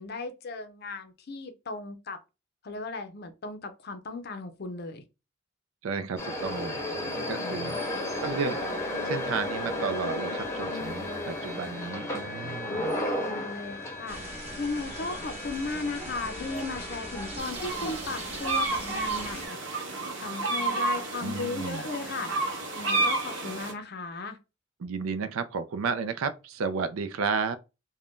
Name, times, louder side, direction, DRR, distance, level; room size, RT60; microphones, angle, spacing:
voice 1, 0.0-2.2 2.6-5.0 7.4-7.8 12.6-14.2 14.6-19.9 20.1-22.3 22.7-24.4, left 3 dB, 50° left, 0.5 m, -36 dB
voice 2, 5.8-7.0 7.3-7.8 8.2-13.0 21.2-21.9 24.8-27.6, right 5 dB, 85° right, 0.4 m, -33 dB
sound 1, 6.2-17.4, left 1 dB, 15° left, 0.8 m, -34 dB
sound 2, 14.1-19.5, right 1 dB, 30° right, 1.0 m, -41 dB
sound 3, 17.4-23.7, right 3 dB, 60° right, 0.8 m, -31 dB
2.5 x 2.2 x 3.5 m
head